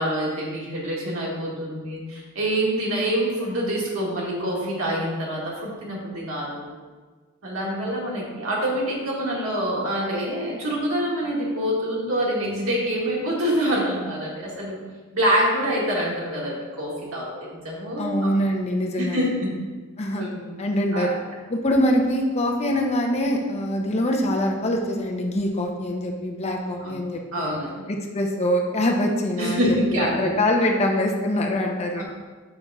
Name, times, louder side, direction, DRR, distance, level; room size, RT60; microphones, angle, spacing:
voice 1, 0.0-6.7 7.4-14.8 15.1-18.3 19.0-19.6 20.2-20.6 20.9-21.2 26.8-27.0 27.3-27.9 29.4-30.3 32.0-32.1, equal, 90° right, -4 dB, 1.8 m, -26 dB
voice 2, 18.0-19.2 20.0-20.3 20.6-21.2 21.5-27.5 28.1-29.7 30.0-32.0, left 1 dB, 30° left, 1 dB, 0.7 m, -24 dB
5.9 x 3.5 x 5.4 m, 1.4 s
head